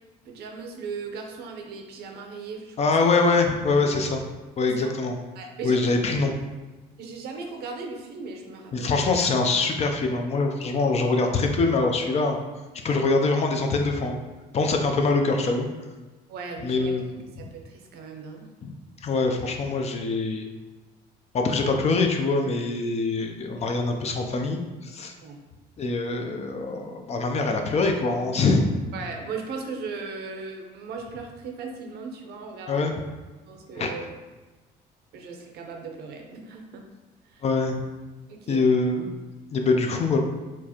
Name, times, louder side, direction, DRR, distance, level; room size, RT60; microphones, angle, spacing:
voice 1, 0.2-2.8 4.7-4.9 5.4-6.3 7.0-8.9 16.3-18.5 25.2-25.4 28.9-32.9 33.5-34.1 35.1-36.8 37.2-37.4 38.3-38.6, right 4 dB, 75° right, 3 dB, 0.6 m, -37 dB
voice 2, 2.8-4.2 4.6-5.1 5.6-6.3 8.7-12.4 12.8-14.2 14.5-15.7 16.6-17.1 17.4-17.5 18.6-18.7 19.0-20.4 21.3-25.1 25.8-28.7 32.7-32.9 33.8-33.9 37.4-37.8 38.5-39.1 39.5-40.2, left 3 dB, 40° left, 3 dB, 0.5 m, -24 dB
4.5 x 2.4 x 2.8 m, 1.2 s
cardioid pair, 110°, 17 cm